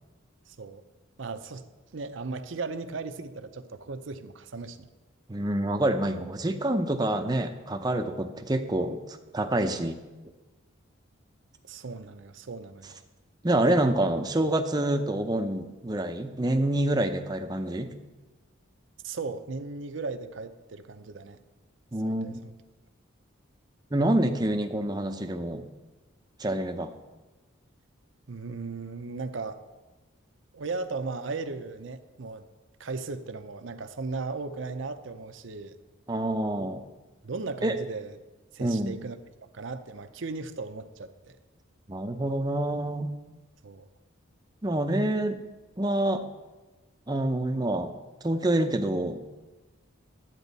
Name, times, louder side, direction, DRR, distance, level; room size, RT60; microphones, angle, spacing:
voice 1, 0.5-0.8 1.2-1.6 1.9-4.9 11.7-13.0 19.0-21.4 22.1-22.3 28.3-29.6 30.5-32.5 32.8-35.8 37.2-38.2 38.5-39.2 39.5-41.4 43.6-43.9, right 4 dB, 65° right, 9 dB, 0.6 m, -36 dB
voice 2, 5.3-9.0 9.3-10.0 13.4-17.9 21.9-22.5 23.9-25.6 26.4-26.9 36.1-36.8 37.6-37.7 38.6-38.9 41.9-43.1 44.6-45.4 45.8-46.2 47.1-47.9 48.2-49.3, right 1 dB, 20° right, 6 dB, 0.6 m, -27 dB
12.0 x 9.0 x 4.1 m, 1.2 s
head